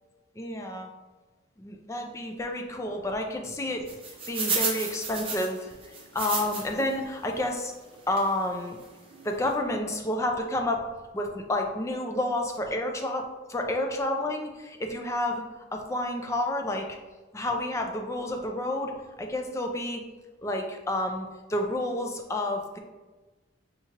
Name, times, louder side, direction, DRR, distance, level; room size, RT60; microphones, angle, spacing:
voice 1, 0.4-0.9 1.6-3.9 4.3-5.7 6.1-7.7 8.1-8.8 9.2-10.9 11.1-15.4 15.7-17.0 17.3-18.9 19.2-20.1 20.4-22.8, left 1 dB, 15° left, 3 dB, 0.4 m, -30 dB
sound 1, 3.9-6.9 7.3-7.4 8.2-8.3 8.8-8.9 9.1-9.3, right 4 dB, 30° right, 0.7 m, -31 dB
4.7 x 2.8 x 2.8 m, 1.2 s
head